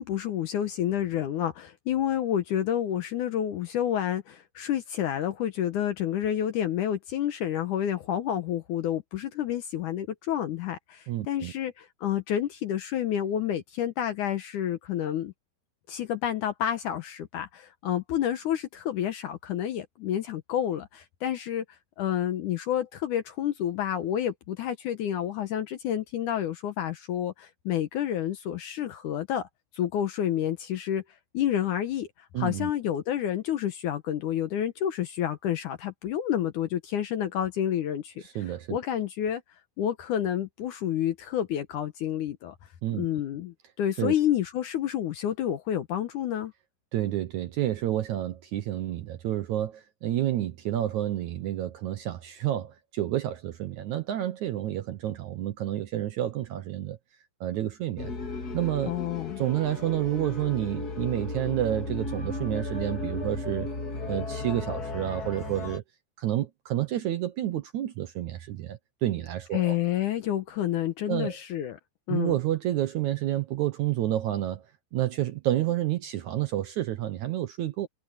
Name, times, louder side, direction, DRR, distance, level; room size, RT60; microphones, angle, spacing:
voice 1, 0.0-15.3 15.9-21.7 22.0-29.5 29.7-31.0 31.3-32.1 32.4-38.1 38.7-39.4 39.8-42.5 42.9-46.5 58.9-59.4 69.5-71.8 72.1-72.3, left 10 dB, 70° left, 2.0 m, -29 dB
voice 2, 11.1-11.5 32.3-32.7 38.2-38.8 42.8-43.1 44.0-44.1 46.9-57.0 57.4-58.1 58.5-58.9 59.4-63.7 64.1-65.8 66.2-69.8 71.1-71.4 72.1-74.6 74.9-77.9, right 13 dB, 75° right, 1.7 m, -29 dB
sound 1, 58.0-65.8, left 2 dB, 30° left, 2.0 m, -35 dB
omnidirectional pair, 4.7 m